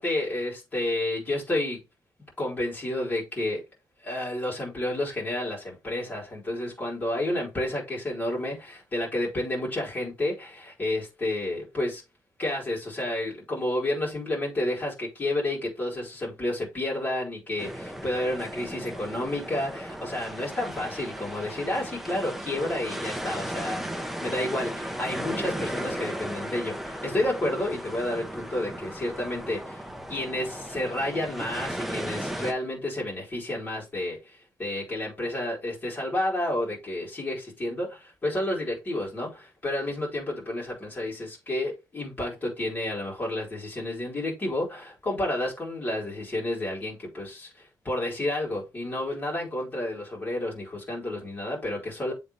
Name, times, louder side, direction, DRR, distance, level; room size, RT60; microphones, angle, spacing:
voice 1, 0.0-1.8 2.4-3.6 4.0-12.0 12.4-29.8 30.1-34.2 34.6-52.1, left 1 dB, 25° left, 4.0 m, -30 dB
sound 1, 17.6-32.5, equal, 5° right, 0.9 m, -36 dB
7.8 x 4.0 x 3.3 m
wide cardioid pair, 165°, 7 cm